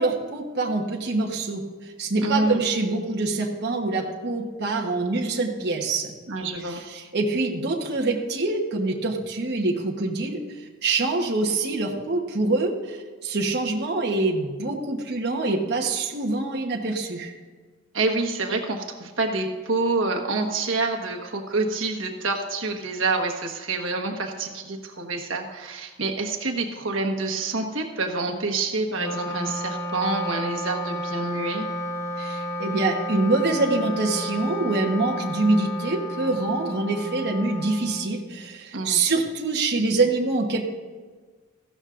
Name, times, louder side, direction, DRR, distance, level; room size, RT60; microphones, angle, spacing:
voice 1, 0.0-6.1 6.7-17.3 32.2-40.7, right 3 dB, 50° right, 0 dB, 1.1 m, -25 dB
voice 2, 2.2-2.6 6.3-6.8 17.9-31.7 38.7-39.0, right 3 dB, 65° right, 1 dB, 1.4 m, -27 dB
Wind instrument woodwind instrument, 28.9-38.5, equal, 10° left, 0.6 m, -32 dB
15.5 x 12.5 x 2.5 m, 1.5 s
head